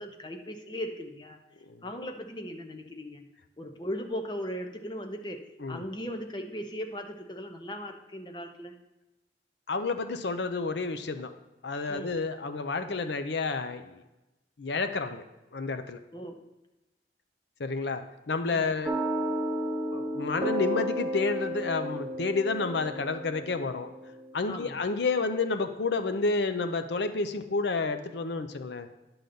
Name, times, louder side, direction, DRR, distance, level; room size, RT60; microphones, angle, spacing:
voice 1, 0.0-1.4 1.8-3.3 3.6-8.7 11.9-12.1 16.1-16.4 18.5-18.7 24.5-24.8, equal, 25° left, 4 dB, 0.8 m, -38 dB
voice 2, 9.7-11.3 11.6-14.0 14.6-15.2 15.5-16.0 17.6-18.9 19.9-23.9 24.3-28.9, left 4 dB, 75° left, 9 dB, 0.6 m, -30 dB
sound 1, 18.9-24.3, right 1 dB, 10° right, 0.9 m, -33 dB
10.5 x 3.9 x 6.8 m, 1.0 s
head